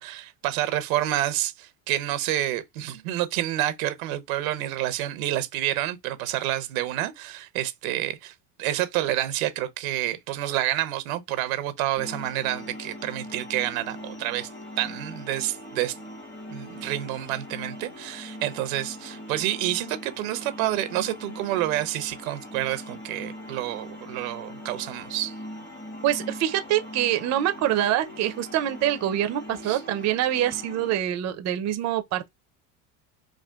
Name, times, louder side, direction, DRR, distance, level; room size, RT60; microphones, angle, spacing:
voice 1, 0.0-8.3 8.6-14.5 14.8-15.9 16.5-25.3 29.6-29.8, right 14 dB, 85° right, 0.7 m, -28 dB
sound 1, 12.0-31.0, equal, 25° left, 1.2 m, -41 dB
voice 2, 26.0-32.3, right 12 dB, 40° right, 0.5 m, -25 dB
3.6 x 2.4 x 2.2 m
supercardioid pair, 95°, 41 cm